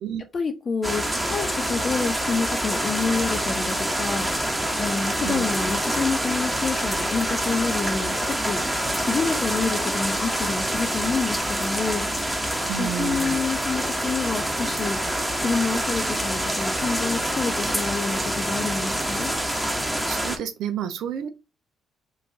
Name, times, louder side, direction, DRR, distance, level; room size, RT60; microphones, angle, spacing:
voice 1, 0.3-4.3 4.8-8.6 9.0-12.0 12.8-15.0 15.4-19.3, left 4 dB, 45° left, 0.9 m, -28 dB
sound 1, 0.8-20.4, right 1 dB, 10° right, 1.1 m, -26 dB
voice 2, 12.7-13.4 20.1-21.3, right 9 dB, 75° right, 0.4 m, -30 dB
3.9 x 2.6 x 3.9 m
supercardioid pair, 55°, 0 cm